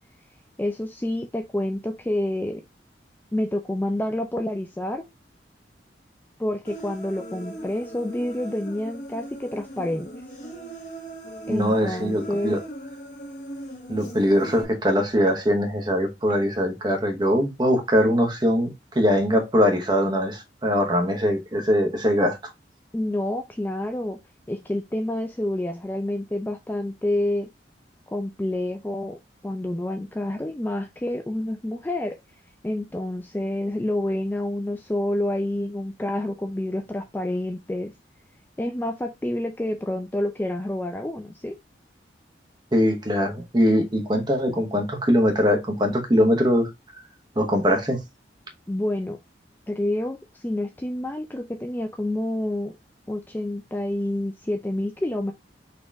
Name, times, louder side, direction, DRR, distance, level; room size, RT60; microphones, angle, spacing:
voice 1, 0.6-2.6 3.3-5.0 6.4-10.1 11.5-12.6 22.9-24.2 24.5-27.5 28.1-32.2 32.6-37.9 38.6-41.6 48.7-49.2 49.7-52.7 53.1-55.3, left 1 dB, 10° left, 0.3 m, -28 dB
Human voice, 6.7-14.6, right 1 dB, 45° left, 1.0 m, -39 dB
voice 2, 11.5-12.6 13.9-22.4 42.7-46.7 47.4-48.0, equal, 25° right, 1.0 m, -22 dB
4.2 x 3.0 x 3.4 m
head